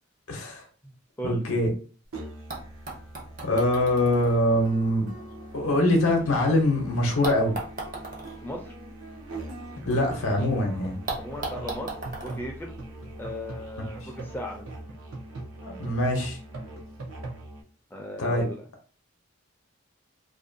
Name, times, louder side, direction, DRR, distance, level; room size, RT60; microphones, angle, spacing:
voice 1, 0.3-0.6 1.2-1.7 3.4-5.1 5.5-7.5 9.8-11.0 15.6-16.4 18.2-18.4, left 1 dB, 85° left, 1 dB, 0.6 m, -23 dB
sound 1, 2.0-2.1 2.5-6.6 7.2-10.2 10.5-10.6 11.1-13.5 14.4-14.5, right 2 dB, 40° right, 0.6 m, -39 dB
Musical instrument, 2.1-17.6, right 2 dB, 85° right, 0.6 m, -41 dB
voice 2, 8.4-8.8 11.2-11.9 12.2-12.8 13.2-14.6 17.9-18.6, equal, 10° left, 0 dB, 0.3 m, -36 dB
2.5 x 2.1 x 2.5 m, 0.40 s
head